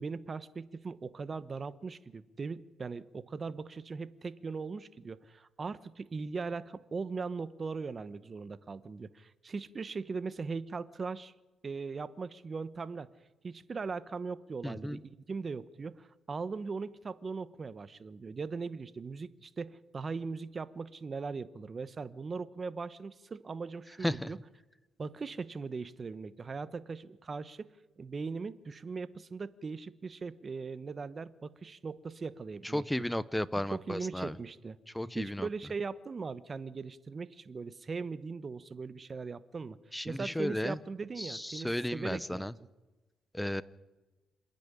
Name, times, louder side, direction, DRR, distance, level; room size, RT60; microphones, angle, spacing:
voice 1, 0.0-11.3 11.6-13.1 13.4-24.4 25.0-27.7 28.0-32.8 33.7-34.8 35.1-39.8 40.0-42.5, right 4 dB, 35° right, 15 dB, 1.1 m, -39 dB
voice 2, 14.6-15.0 24.0-24.3 32.7-34.4 34.9-35.5 39.9-40.8 41.2-42.5 43.3-43.6, left 1 dB, 5° left, 17 dB, 0.8 m, -34 dB
27.0 x 10.5 x 9.9 m, 1.1 s
cardioid pair, 90°, 0 cm